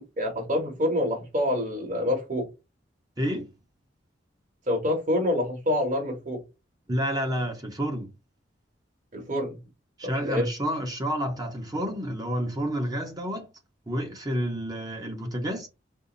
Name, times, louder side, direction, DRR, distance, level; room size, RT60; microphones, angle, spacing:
voice 1, 0.0-2.5 4.7-6.4 9.1-9.6 10.0-10.5, left 1 dB, 45° right, 1.8 m, -27 dB
voice 2, 3.2-3.5 6.9-8.1 10.0-13.5 13.9-15.7, equal, 20° right, 1.0 m, -29 dB
5.4 x 2.1 x 4.0 m
head